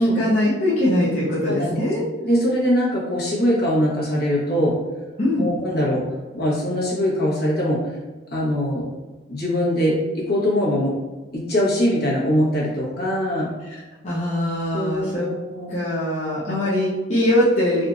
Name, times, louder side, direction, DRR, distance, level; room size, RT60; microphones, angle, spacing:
voice 1, 0.0-2.0 5.2-5.5 14.0-15.3 15.7-17.9, left 1 dB, 40° left, -9 dB, 0.7 m, -22 dB
voice 2, 2.2-4.7 5.3-6.0 6.3-8.0 8.3-8.8 9.3-10.9 11.3-13.5 14.7-15.7, equal, 60° left, -5 dB, 1.1 m, -22 dB
3.5 x 2.6 x 2.5 m, 1.3 s
head